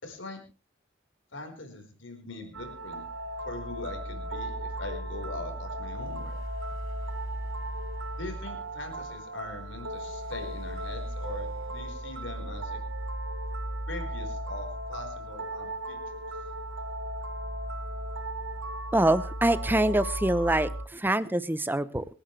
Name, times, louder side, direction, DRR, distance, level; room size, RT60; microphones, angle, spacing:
voice 1, 0.0-0.4 1.3-3.0 3.4-6.4 8.2-12.8 13.9-16.2, left 2 dB, 75° left, 4 dB, 4.6 m, -41 dB
sound 1, 2.5-20.9, right 1 dB, 90° right, 1.4 m, -36 dB
voice 2, 18.9-22.0, right 1 dB, 10° right, 15 dB, 0.7 m, -25 dB
26.5 x 10.0 x 3.3 m, 0.32 s
head